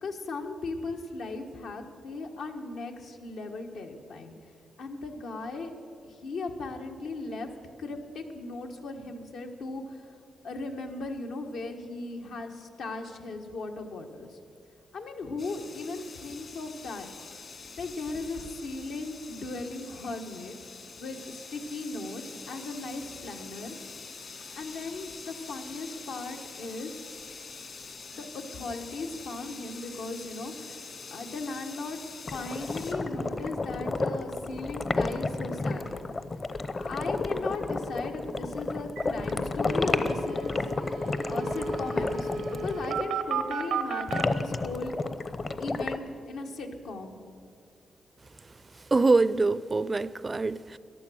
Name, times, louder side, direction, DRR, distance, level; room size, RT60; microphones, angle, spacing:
voice 1, 0.0-4.4 4.8-5.7 6.0-7.5 7.8-10.1 10.4-14.4 14.9-17.1 17.8-20.6 21.0-23.8 24.5-26.9 28.2-32.0 32.3-36.1 36.8-40.6 40.9-44.9 45.6-47.2, left 3 dB, 85° left, 1.3 m, -37 dB
sound 1, 15.4-32.9, left 4 dB, 60° left, 2.0 m, -45 dB
sound 2, 32.3-43.0 44.1-46.0, left 3 dB, 35° left, 0.7 m, -31 dB
sound 3, 39.0-39.1 39.3-39.4 39.6-44.2, right 5 dB, 90° right, 0.8 m, -34 dB
voice 2, 48.9-50.8, right 3 dB, 30° right, 0.4 m, -24 dB
14.5 x 11.0 x 6.3 m
cardioid pair, 85°, 0 cm